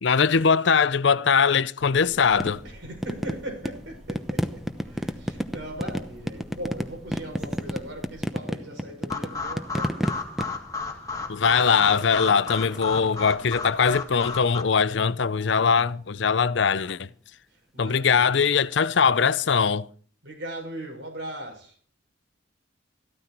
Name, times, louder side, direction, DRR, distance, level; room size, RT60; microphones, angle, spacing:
voice 1, 0.0-2.6 11.3-17.1 17.8-19.9, left 6 dB, 65° left, 0.6 m, -21 dB
sound 1, 1.8-8.2, equal, 35° right, 2.9 m, -49 dB
sound 2, 2.4-13.8 15.5-15.9 19.1-19.2, equal, ahead, 0.9 m, -33 dB
voice 2, 2.6-10.2 10.9-11.1 17.5-18.3 20.2-21.8, right 1 dB, 70° right, 5.4 m, -39 dB
sound 3, 9.1-14.6, left 4 dB, 15° left, 2.2 m, -34 dB
14.5 x 13.0 x 4.5 m
head